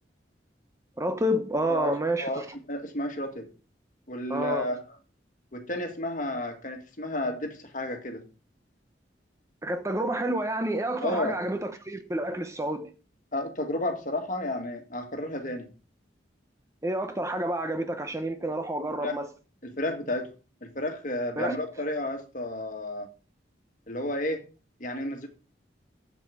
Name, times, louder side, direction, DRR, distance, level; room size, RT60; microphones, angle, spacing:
voice 1, 1.0-2.5 4.3-4.7 9.6-12.9 16.8-19.3 21.4-21.6, right 1 dB, 15° right, 0.7 m, -29 dB
voice 2, 2.2-3.5 4.1-4.8 5.5-8.3 11.0-11.4 13.3-15.7 19.0-19.2 19.6-20.3 20.6-23.1 23.9-24.4 24.8-25.3, left 1 dB, 45° left, 1.7 m, -32 dB
7.7 x 7.6 x 5.1 m
head